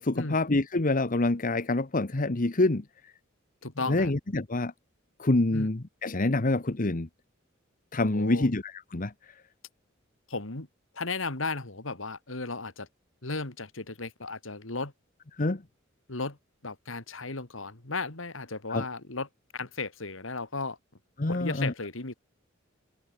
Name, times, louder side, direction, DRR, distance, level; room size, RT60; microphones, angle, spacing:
voice 1, 0.0-2.8 3.9-4.7 5.2-7.1 7.9-9.1 15.4-15.6 18.7-18.8 21.2-21.7, left 2 dB, 40° left, 1.1 m, -26 dB
voice 2, 3.6-4.1 5.5-5.7 8.1-8.5 10.3-10.7 10.9-12.9 13.2-14.9 16.1-16.4 16.6-19.3 19.5-20.8 21.3-22.1, left 3 dB, 75° left, 2.7 m, -35 dB
head